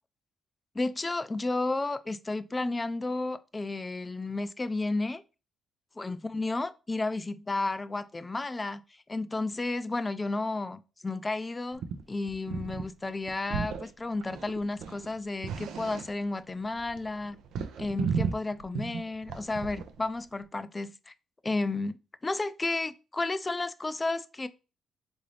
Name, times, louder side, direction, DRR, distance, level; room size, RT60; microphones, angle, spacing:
voice 1, 0.7-5.2 6.0-11.8 12.1-17.4 17.8-21.1 21.4-22.0 22.2-24.5, left 2 dB, 20° left, 0.3 m, -32 dB
sound 1, 11.7-12.0 12.3-12.8 13.1-13.9 14.2-16.3 16.6-20.0, right 6 dB, 80° right, 0.4 m, -34 dB
3.8 x 2.6 x 3.2 m
cardioid pair, 90°, 0 cm